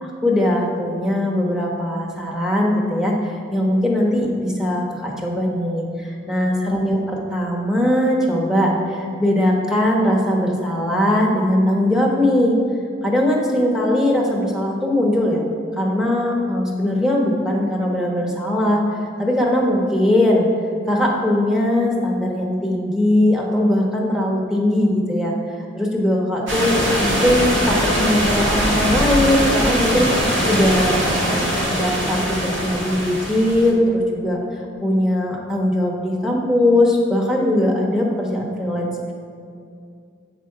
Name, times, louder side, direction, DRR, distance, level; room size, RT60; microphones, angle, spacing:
voice 1, 0.0-12.6 13.0-15.4 15.8-18.8 19.2-20.5 20.9-25.3 25.8-30.1 30.4-34.4 34.8-39.1, left 1 dB, 5° right, -2 dB, 1.0 m, -20 dB
sound 1, 26.5-33.7, equal, 80° right, 1.5 m, -21 dB
8.2 x 5.8 x 4.8 m, 2.4 s
head